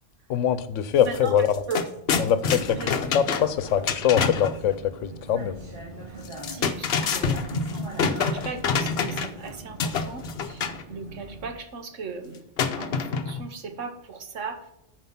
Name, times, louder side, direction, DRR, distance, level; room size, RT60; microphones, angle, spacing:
voice 1, 0.3-1.6 2.2-5.6, left 9 dB, 90° left, 14 dB, 1.0 m, -23 dB
sound 1, 1.0-1.2 1.5-4.6 6.2-9.4 9.8-10.8 12.6-13.5, left 5 dB, 60° left, 0.9 m, -27 dB
voice 2, 1.0-1.8 2.8-2.9 3.7-3.9 6.5-7.4 7.7-12.5 12.8-14.7, right 5 dB, 85° right, 7 dB, 1.4 m, -37 dB
Vehicle, 2.4-11.5, right 2 dB, 45° right, 2.3 m, -41 dB
9.3 x 4.9 x 5.7 m, 0.82 s
omnidirectional pair, 1.2 m